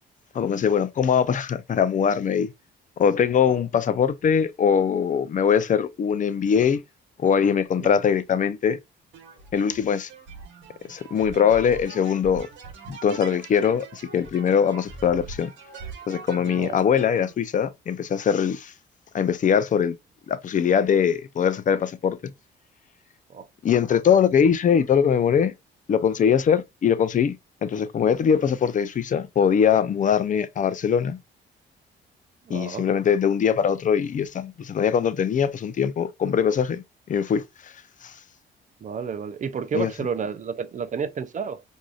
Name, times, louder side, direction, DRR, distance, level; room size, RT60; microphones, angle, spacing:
voice 1, 0.3-2.5 3.0-6.8 7.2-8.8 9.5-10.1 10.9-12.5 12.9-15.5 16.1-18.7 19.1-19.9 20.3-22.2 23.6-25.5 25.9-27.3 27.6-31.2 32.5-37.7 38.0-38.1 39.7-39.9, left 7 dB, 40° left, 0.5 m, -22 dB
sound 1, 9.1-17.3, right 4 dB, 70° right, 1.0 m, -42 dB
voice 2, 16.4-16.8 23.3-23.5 32.5-32.9 38.8-41.6, right 6 dB, 40° right, 0.5 m, -31 dB
4.7 x 2.7 x 2.3 m
cardioid pair, 90°, 20 cm